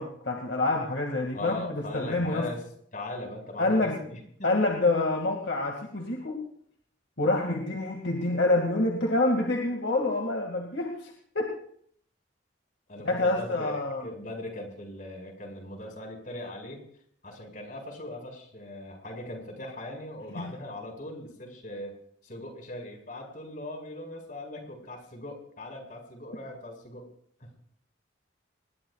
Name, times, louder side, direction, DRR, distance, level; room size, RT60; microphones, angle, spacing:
voice 1, 0.0-2.5 3.6-4.0 4.4-6.4 7.2-11.5 13.0-14.0 20.4-20.5, left 2 dB, 70° left, 0 dB, 2.2 m, -27 dB
voice 2, 1.3-2.6 2.9-4.5 12.9-16.8 17.2-21.9 22.2-27.1 27.4-27.5, left 1 dB, 45° left, 2 dB, 5.4 m, -40 dB
26.0 x 21.0 x 2.4 m, 0.64 s
head